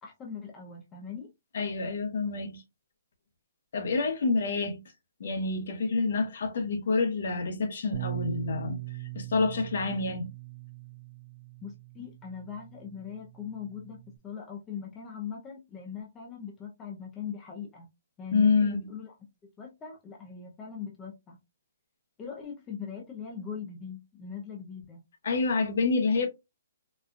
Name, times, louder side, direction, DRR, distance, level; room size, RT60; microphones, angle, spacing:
voice 1, 0.0-1.3 11.6-17.9 18.2-19.1 19.4-21.4 22.2-25.0, left 7 dB, 10° left, 0.5 m, -41 dB
voice 2, 1.5-2.6 3.7-4.8 5.2-8.8 9.1-10.3 18.3-18.9 25.2-26.3, left 4 dB, 55° left, 0.8 m, -27 dB
Bass guitar, 7.9-14.2, right 18 dB, 45° right, 0.5 m, -41 dB
4.1 x 2.3 x 2.4 m
hypercardioid pair, 175°, 0 cm